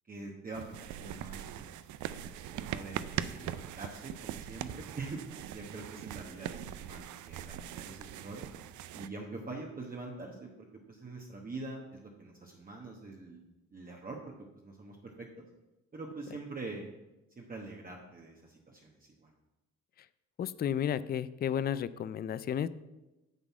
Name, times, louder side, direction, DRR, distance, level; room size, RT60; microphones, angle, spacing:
voice 1, 0.1-1.7 2.5-8.5 8.9-13.4 13.7-14.3 14.6-15.5 15.9-16.9 17.4-19.3, right 3 dB, 30° right, 0 dB, 1.2 m, -44 dB
sound 1, 0.5-9.1, right 11 dB, 75° right, 0.5 m, -41 dB
voice 2, 20.4-22.7, left 9 dB, 35° left, 16 dB, 0.4 m, -32 dB
9.3 x 4.0 x 7.2 m, 1.0 s
cardioid pair, 90°, 30 cm